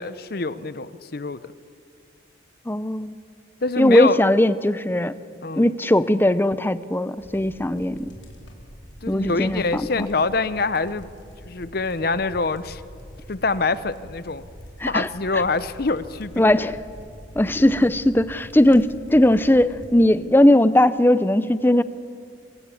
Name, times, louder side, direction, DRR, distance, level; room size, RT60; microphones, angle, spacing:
voice 1, 0.0-1.4 3.6-4.2 5.4-5.7 9.0-11.1 11.4-12.8 13.3-14.4 14.9-16.4, left 3 dB, 50° left, 15 dB, 0.7 m, -25 dB
voice 2, 2.7-3.2 3.8-5.1 5.6-8.1 9.1-10.1 14.8-15.1 16.4-16.8 17.4-21.8, left 1 dB, 10° left, 14 dB, 0.5 m, -19 dB
sound 1, 7.2-19.9, equal, 70° left, 3.8 m, -44 dB
24.0 x 15.0 x 8.4 m, 2.3 s
head